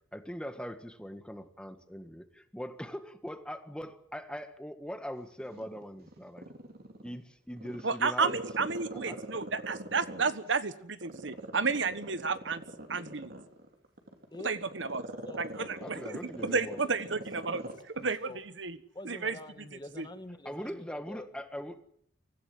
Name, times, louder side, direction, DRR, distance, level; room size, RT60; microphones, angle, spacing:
voice 1, 0.1-6.5 7.0-9.2 15.8-16.8 20.5-21.9, equal, 5° left, 9 dB, 1.7 m, -41 dB
Growling, 5.4-7.1 7.6-10.6 11.0-17.8 18.1-18.2, right 1 dB, 55° right, 3.6 m, -43 dB
voice 2, 7.8-12.6 12.9-13.3 14.4-15.0 15.4-16.2 16.4-17.6 17.9-18.3 18.6-18.8 19.0-19.4 20.0-20.1, right 4 dB, 80° right, 13 dB, 1.4 m, -31 dB
voice 3, 15.3-16.8 17.1-17.2 17.5-17.7 18.0-18.4 18.9-21.3, left 1 dB, 25° left, 9 dB, 1.9 m, -47 dB
24.5 x 15.5 x 7.7 m, 0.70 s
head